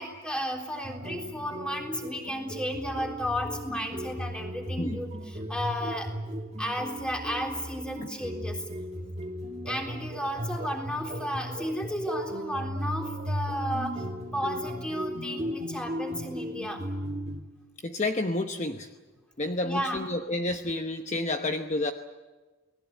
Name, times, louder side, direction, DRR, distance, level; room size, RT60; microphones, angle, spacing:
voice 1, 0.0-6.1 6.6-8.7 9.7-14.0 14.3-16.8 19.6-20.1, equal, 5° left, 2 dB, 3.6 m, -33 dB
sound 1, 0.8-17.4, equal, 30° right, 1.7 m, -36 dB
voice 2, 17.8-18.9 19.4-21.9, left 2 dB, 35° left, 6 dB, 1.0 m, -30 dB
29.5 x 20.0 x 8.3 m, 1.3 s
head